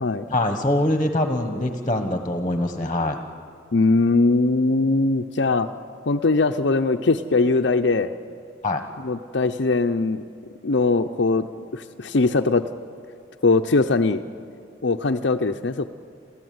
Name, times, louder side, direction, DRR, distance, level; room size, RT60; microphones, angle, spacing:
voice 1, 0.3-3.2 8.6-8.8, left 1 dB, 25° left, 6 dB, 1.3 m, -23 dB
voice 2, 3.7-5.7 6.1-8.1 9.0-10.2 10.6-11.5 11.7-12.6 13.4-14.2 14.8-15.9, left 3 dB, 65° left, 6 dB, 0.7 m, -20 dB
29.5 x 14.5 x 9.5 m, 2.4 s
head